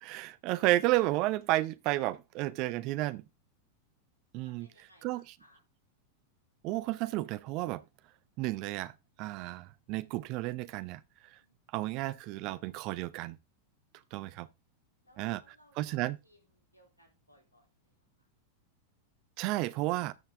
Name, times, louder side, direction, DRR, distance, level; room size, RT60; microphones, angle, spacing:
voice 1, 0.0-3.2 4.3-4.7 5.0-5.3 6.6-7.8 8.4-8.9 9.2-11.0 11.7-13.4 14.1-14.5 15.2-16.2 19.4-20.1, right 17 dB, 40° right, 0.7 m, -32 dB
voice 2, 4.4-5.6 11.4-11.6 15.0-15.9 16.2-16.4 16.7-17.9, equal, 85° left, 3.8 m, -64 dB
13.5 x 5.7 x 3.8 m
figure-of-eight pair, 90°, 0 cm